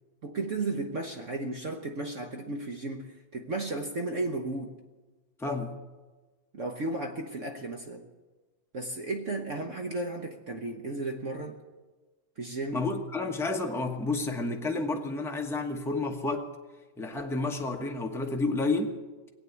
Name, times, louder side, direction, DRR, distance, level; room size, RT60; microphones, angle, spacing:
voice 1, 0.2-4.7 6.5-8.0 8.7-11.6 12.4-12.9, right 2 dB, 45° right, 3 dB, 1.1 m, -34 dB
voice 2, 5.4-5.7 12.7-16.5 17.0-18.9, left 3 dB, ahead, 2 dB, 0.6 m, -30 dB
20.0 x 8.6 x 8.2 m, 1.3 s
omnidirectional pair, 2.3 m